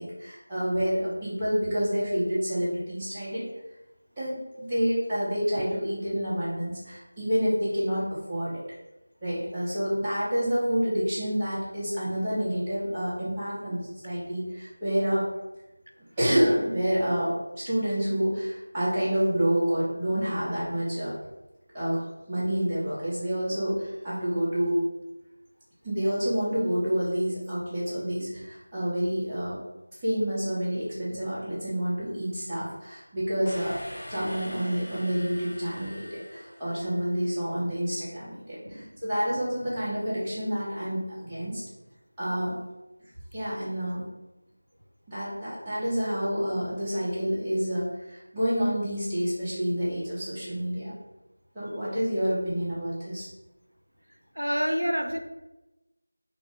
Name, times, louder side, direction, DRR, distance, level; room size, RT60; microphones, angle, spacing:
voice 1, 0.0-3.4 4.2-8.6 9.2-15.3 16.2-21.1 21.7-22.0 22.3-24.8 25.8-29.6 30.0-33.8 34.1-41.6 42.2-42.6 43.3-44.1 45.1-50.9 51.5-53.3, equal, 10° right, -14 dB, 0.6 m, -28 dB
sound 1, 33.5-37.2, equal, 45° left, 0.6 m, -43 dB
voice 2, 54.4-55.2, equal, 85° right, 4 dB, 0.4 m, -28 dB
2.4 x 2.4 x 3.4 m, 0.99 s
figure-of-eight pair, 170°, 0 cm